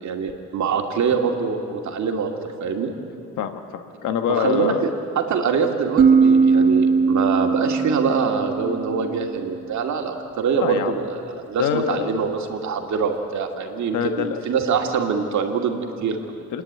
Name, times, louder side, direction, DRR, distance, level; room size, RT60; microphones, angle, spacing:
voice 1, 0.0-2.9 4.3-4.9 5.2-16.4, right 6 dB, 70° right, 3 dB, 2.3 m, -24 dB
voice 2, 3.4-4.8 10.6-10.9 11.6-12.1 13.9-14.4 16.5-16.6, left 9 dB, 85° left, 7 dB, 1.5 m, -25 dB
sound 1, 6.0-9.6, right 5 dB, 30° right, 0.5 m, -19 dB
28.5 x 10.5 x 9.5 m, 2.7 s
cardioid pair, 90°, 30 cm